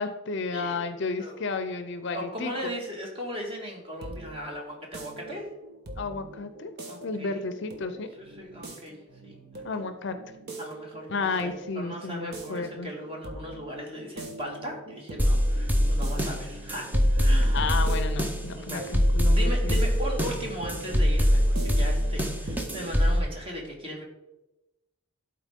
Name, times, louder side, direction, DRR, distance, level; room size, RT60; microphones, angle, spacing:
voice 1, 0.0-2.5 6.0-6.7 7.0-8.1 9.6-10.2 11.1-12.9 17.5-19.8, left 4 dB, 55° left, 9 dB, 0.5 m, -32 dB
voice 2, 0.5-0.9 1.2-1.4 2.1-5.5 6.9-7.4 8.2-9.0 9.2-9.6 10.6-11.1 11.4-17.6 18.6-18.9 19.4-24.0, equal, 25° right, -1 dB, 1.7 m, -38 dB
sound 1, 3.6-23.0, right 2 dB, 50° right, 1.1 m, -42 dB
sound 2, 15.2-23.2, equal, 10° right, 0.6 m, -23 dB
12.0 x 4.4 x 3.6 m, 0.97 s
head